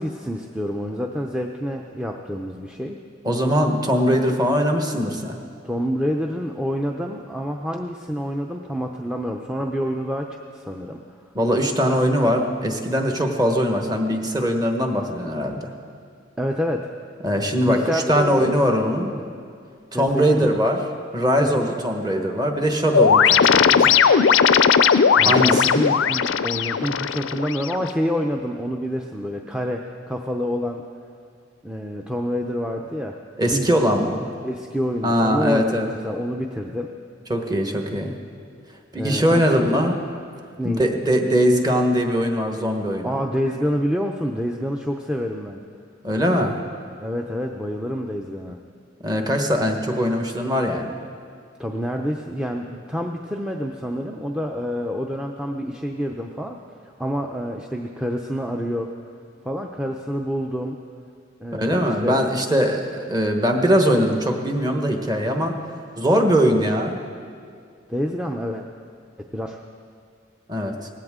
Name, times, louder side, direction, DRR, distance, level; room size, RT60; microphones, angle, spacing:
voice 1, 0.0-3.0 5.6-11.0 16.4-16.9 17.7-18.6 19.1-19.3 19.9-20.5 21.4-21.7 25.2-30.8 31.6-33.2 33.5-33.7 34.4-36.9 38.9-39.9 40.6-40.9 43.0-45.6 47.0-48.6 51.6-56.6 57.0-58.9 59.4-60.8 61.4-62.2 67.9-68.6 69.2-69.6, equal, 5° right, 1 dB, 0.6 m, -27 dB
voice 2, 3.2-5.4 11.3-15.7 17.2-19.1 19.9-20.8 21.1-23.9 25.2-25.8 33.4-34.3 35.0-35.9 37.3-38.1 38.9-40.0 40.6-43.1 46.0-46.6 49.0-51.0 61.5-65.5 66.0-67.0 70.5-70.9, equal, 20° right, 3 dB, 1.2 m, -21 dB
sound 1, 22.9-27.9, left 7 dB, 90° left, 0.5 m, -17 dB
18.5 x 16.0 x 3.7 m, 2.3 s
head